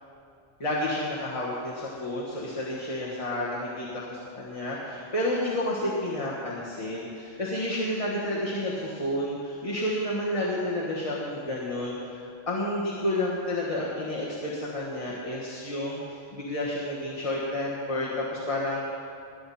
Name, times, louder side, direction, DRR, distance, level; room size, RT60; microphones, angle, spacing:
voice 1, 0.6-18.8, left 1 dB, 30° left, -5 dB, 1.6 m, -30 dB
20.5 x 9.9 x 4.2 m, 2.4 s
omnidirectional pair, 1.1 m